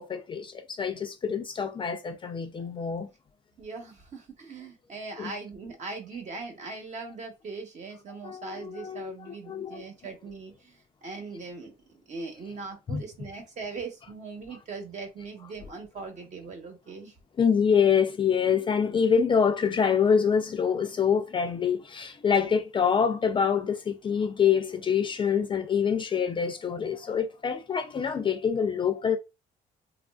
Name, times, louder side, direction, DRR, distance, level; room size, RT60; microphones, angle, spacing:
voice 1, 0.0-3.1 5.2-5.3 8.2-9.9 12.9-13.0 17.4-29.2, left 7 dB, 30° left, 0.4 m, -26 dB
voice 2, 3.6-11.7 12.1-17.1, right 4 dB, 45° right, 1.0 m, -40 dB
3.0 x 2.4 x 2.3 m
cardioid pair, 110°, 17 cm